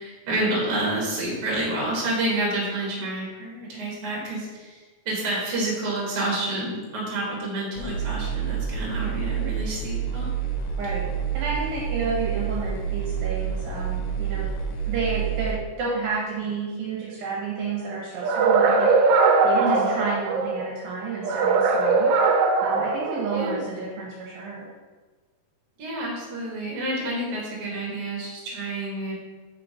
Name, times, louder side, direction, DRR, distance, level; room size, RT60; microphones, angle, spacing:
voice 1, 0.0-10.3 19.6-19.9 23.3-23.6 25.8-29.1, right 1 dB, 45° right, -4 dB, 2.1 m, -29 dB
sound 1, 7.8-15.6, right 8 dB, 90° left, 2.6 m, -28 dB
voice 2, 8.8-9.2 10.8-11.1 11.3-14.5 14.9-18.9 19.4-22.1 22.6-24.7, right 4 dB, 70° right, -5 dB, 2.5 m, -31 dB
sound 2, 18.2-20.6 21.2-23.6, right 4 dB, 90° right, 2.6 m, -21 dB
5.7 x 3.8 x 4.9 m, 1.3 s
omnidirectional pair, 4.6 m